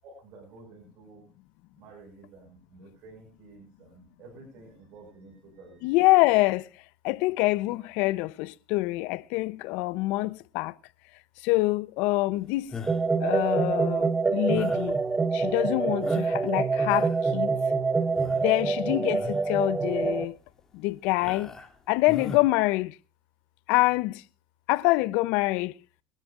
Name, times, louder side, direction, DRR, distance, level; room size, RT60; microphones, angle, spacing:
voice 1, 0.0-1.3 1.8-5.9 18.4-18.7, right 3 dB, 65° right, 6.0 m, -51 dB
voice 2, 5.8-6.7 7.0-10.7 11.4-12.7 13.2-15.0 15.3-17.6 18.3-20.4 20.7-21.5 21.9-23.0 23.7-24.2 24.7-25.7, left 20 dB, 75° left, 0.7 m, -25 dB
sound 1, 12.7-13.2 14.5-14.9 15.5-15.6 16.0-16.5 16.8-17.3 18.2-18.5 19.1-19.5 20.0-20.1 21.2-21.8 22.1-22.4, left 4 dB, 20° left, 3.0 m, -40 dB
sound 2, 12.9-20.2, right 4 dB, 25° right, 1.0 m, -26 dB
23.5 x 12.0 x 2.5 m
supercardioid pair, 90°, 2 cm